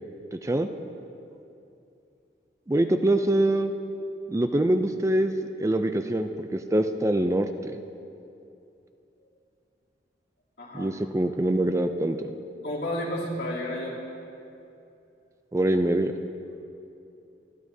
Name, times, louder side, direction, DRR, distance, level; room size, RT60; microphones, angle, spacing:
voice 1, 2.7-3.7 4.3-5.3 5.6-7.7 10.7-12.2 15.5-16.1, right 1 dB, 15° right, 7 dB, 0.4 m, -24 dB
voice 2, 10.6-11.0 12.6-14.0, left 1 dB, 70° left, -6 dB, 3.1 m, -31 dB
28.0 x 11.5 x 2.7 m, 2.7 s
head